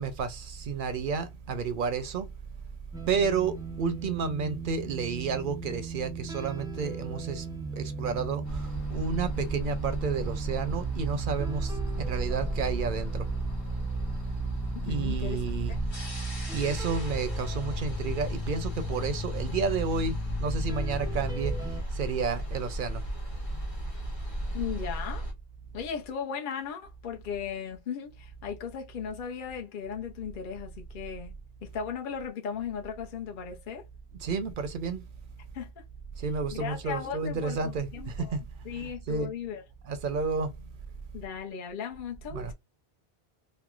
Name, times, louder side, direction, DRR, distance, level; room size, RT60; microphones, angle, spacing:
voice 1, 0.0-2.3 3.1-7.4 7.7-13.3 14.8-15.8 16.5-21.6 21.9-23.0 34.2-35.0 36.2-38.4 38.7-39.3 39.8-40.5 42.3-42.5, right 5 dB, 60° right, 0.7 m, -31 dB
sound 1, 2.9-21.8, right 1 dB, 5° right, 0.3 m, -36 dB
sound 2, 8.4-25.3, right 1 dB, 25° left, 1.0 m, -35 dB
voice 2, 14.9-15.4 15.7-15.8 24.5-25.3 25.7-33.8 35.5-35.8 36.5-38.4 38.6-39.6 41.1-42.5, left 7 dB, 55° left, 0.8 m, -37 dB
3.1 x 2.1 x 2.3 m
omnidirectional pair, 1.1 m